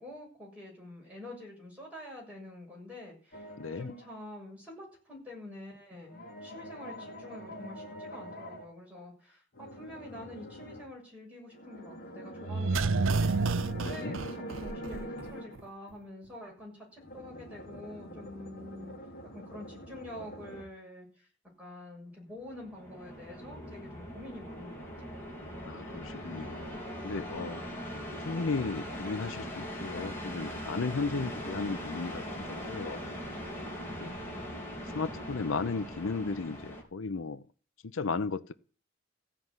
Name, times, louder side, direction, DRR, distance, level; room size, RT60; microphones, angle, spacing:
voice 1, 0.0-19.0 19.3-21.3 21.6-25.2 27.4-27.8 33.6-34.8, left 1 dB, 5° right, 7.2 m, -47 dB
sound 1, 3.3-4.2 6.0-8.7 9.5-10.9 11.5-15.6 17.0-20.6, equal, 50° left, 2.6 m, -44 dB
voice 2, 3.6-3.9 13.8-14.2 25.6-27.6 28.3-33.1 34.0-34.1 34.9-37.4 37.9-38.5, left 4 dB, 85° left, 0.7 m, -35 dB
sound 2, 12.4-15.3 15.6-15.7, right 3 dB, 90° right, 0.6 m, -29 dB
sound 3, 22.4-36.8, equal, 10° left, 3.9 m, -40 dB
15.5 x 5.9 x 9.6 m
head